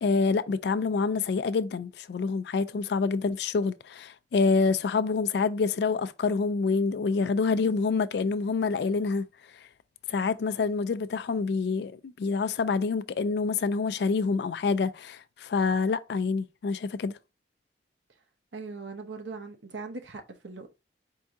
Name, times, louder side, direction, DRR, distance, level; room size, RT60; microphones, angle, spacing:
voice 1, 0.0-9.3 10.1-17.1, left 4 dB, 65° left, 0.3 m, -27 dB
voice 2, 18.5-20.7, right 4 dB, 80° right, 0.8 m, -40 dB
4.6 x 2.7 x 3.4 m
head